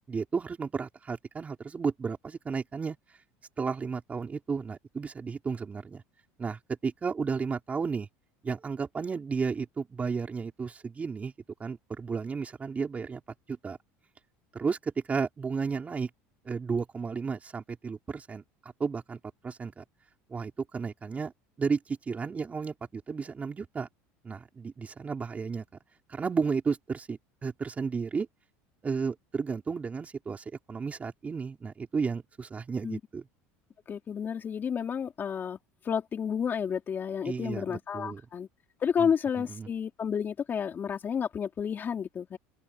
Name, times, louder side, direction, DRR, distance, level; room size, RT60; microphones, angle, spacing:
voice 1, 0.1-3.0 3.6-6.0 6.4-8.1 8.4-11.3 11.6-13.2 13.5-13.8 14.5-16.1 16.4-18.4 18.8-19.8 20.3-21.3 21.6-23.9 24.2-25.6 26.1-28.3 28.8-33.3 37.2-38.2 39.0-39.1 39.4-39.7, right 5 dB, 20° right, 4.8 m, -33 dB
voice 2, 33.9-35.6 35.8-38.5 38.8-42.4, left 7 dB, 30° left, 3.5 m, -31 dB
supercardioid pair, 120°, 6 cm